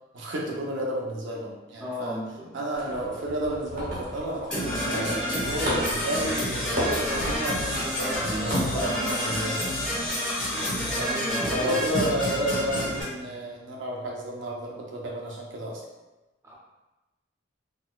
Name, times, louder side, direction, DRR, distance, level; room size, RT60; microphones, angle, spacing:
voice 1, 0.1-2.2 2.5-9.6 11.0-15.8, right 1 dB, 85° right, -2 dB, 0.6 m, -31 dB
voice 2, 1.8-2.5 11.2-11.6 16.4-16.5, left 1 dB, 15° right, -6 dB, 0.6 m, -35 dB
sound 1, 2.7-10.1, equal, 50° right, 0.8 m, -36 dB
Percussion / Brass instrument, 4.5-13.0, equal, 5° left, 1.1 m, -28 dB
3.9 x 2.1 x 2.3 m, 1.1 s
head